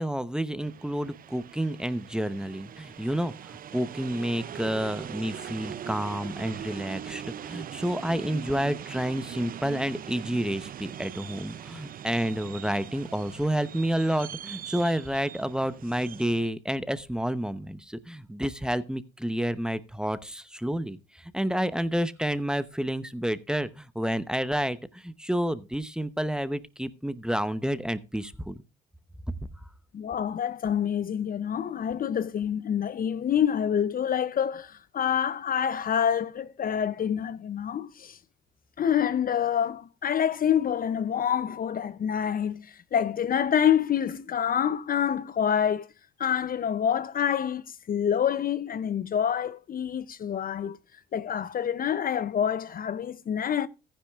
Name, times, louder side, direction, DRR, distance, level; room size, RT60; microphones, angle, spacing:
voice 1, 0.0-28.6, equal, 5° right, 0.8 m, -30 dB
sound 1, 0.6-16.5, right 10 dB, 45° right, 0.4 m, -41 dB
voice 2, 29.9-38.2 38.8-45.9 46.2-50.8 51.1-53.7, left 8 dB, 45° left, 0.6 m, -27 dB
14.5 x 10.0 x 2.4 m
cardioid pair, 90°, 20 cm